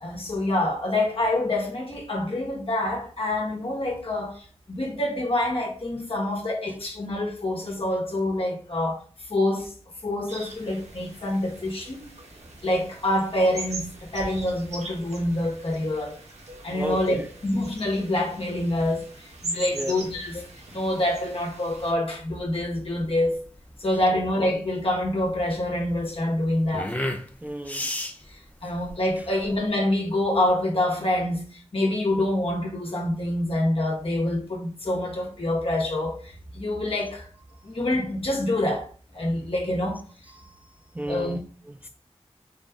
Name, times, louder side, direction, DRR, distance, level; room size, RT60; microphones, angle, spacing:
voice 1, 0.0-4.4 4.7-9.0 9.3-9.7 10.0-12.0 12.6-16.2 16.6-19.1 19.4-20.4 20.7-23.4 23.8-26.9 28.6-31.4 31.7-37.2 37.6-38.9 39.1-40.0 41.1-41.4, left 1 dB, 55° left, 1.4 m, -26 dB
sound 1, 10.3-21.9, right 2 dB, 85° right, 1.0 m, -41 dB
voice 2, 16.7-17.3 19.7-19.9 27.4-27.9 40.4-40.5 40.9-41.9, equal, 15° right, 0.4 m, -33 dB
sound 2, 21.7-29.7, left 1 dB, 15° left, 0.7 m, -35 dB
4.1 x 3.3 x 3.6 m
cardioid pair, 45°, 11 cm